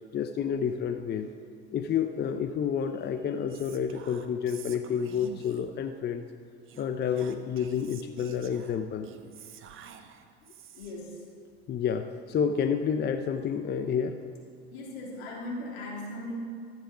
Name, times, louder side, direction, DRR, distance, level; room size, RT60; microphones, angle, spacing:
voice 1, 0.1-1.3 1.7-6.2 6.8-9.1 11.7-14.2, left 7 dB, 30° left, 8 dB, 0.7 m, -29 dB
Whispering, 3.5-5.8 6.6-11.1, right 8 dB, 40° right, 1.0 m, -49 dB
voice 2, 10.7-11.2 14.7-16.3, left 1 dB, 80° left, -2 dB, 3.2 m, -38 dB
14.0 x 7.6 x 6.1 m, 2.2 s
hypercardioid pair, 90°, 31 cm